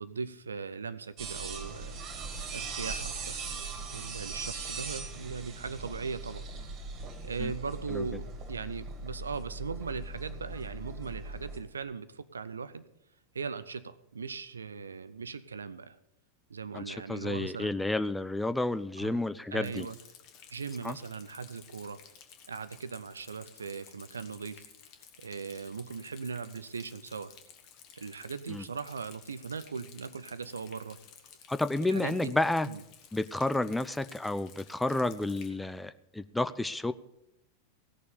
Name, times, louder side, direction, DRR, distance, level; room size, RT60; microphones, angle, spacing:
voice 1, 0.0-2.2 2.5-3.4 3.9-6.5 7.2-12.8 13.3-16.0 16.5-17.7 19.0-19.2 19.5-20.0 20.5-22.0 22.5-24.6 25.2-27.3 28.0-31.0 31.9-32.4 32.7-32.8, right 5 dB, 75° right, 15 dB, 0.6 m, -39 dB
sound 1, 1.2-11.6, right 3 dB, 35° right, 2.5 m, -40 dB
voice 2, 16.7-19.9 20.8-21.0 28.5-28.6 31.5-32.7 33.1-36.9, left 2 dB, 5° left, 14 dB, 0.5 m, -31 dB
Rain, 19.6-35.5, left 8 dB, 40° left, 1.7 m, -55 dB
17.0 x 6.7 x 6.8 m, 0.85 s
figure-of-eight pair, 90°, 0 cm